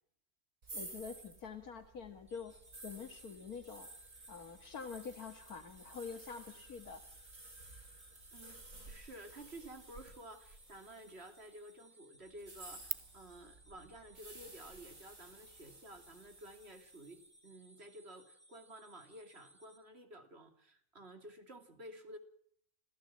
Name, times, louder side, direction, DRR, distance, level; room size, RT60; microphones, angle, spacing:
sound 1, 0.6-11.6 12.3-17.2, right 2 dB, 60° right, 5.4 m, -54 dB
voice 1, 0.7-2.5 2.8-3.9 4.3-7.0, left 5 dB, 80° left, 3 dB, 2.2 m, -46 dB
sound 2, 2.3-19.8, right 1 dB, 25° left, 2.9 m, -64 dB
sound 3, 2.9-12.9, right 3 dB, 15° right, 0.9 m, -53 dB
voice 2, 8.9-22.2, right 1 dB, 45° right, 6 dB, 3.1 m, -53 dB
28.5 x 15.0 x 7.5 m, 0.63 s
omnidirectional pair, 1.6 m